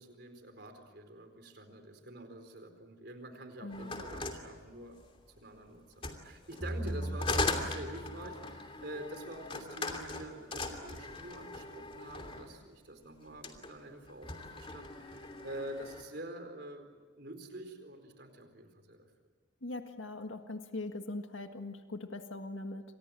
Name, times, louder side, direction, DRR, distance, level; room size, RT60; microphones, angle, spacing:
voice 1, 0.0-5.0 5.4-19.1, right 1 dB, 55° right, 7 dB, 4.3 m, -47 dB
voice 2, 3.6-4.0 6.8-7.2 19.6-22.8, left 2 dB, 80° left, 6 dB, 1.7 m, -41 dB
sound 1, 3.7-5.3 5.9-12.6 13.3-13.7 14.1-16.1, left 3 dB, 25° left, 2.8 m, -39 dB
sound 2, 6.6-8.8, right 1 dB, 5° left, 3.3 m, -39 dB
29.5 x 26.5 x 7.7 m, 1.5 s
head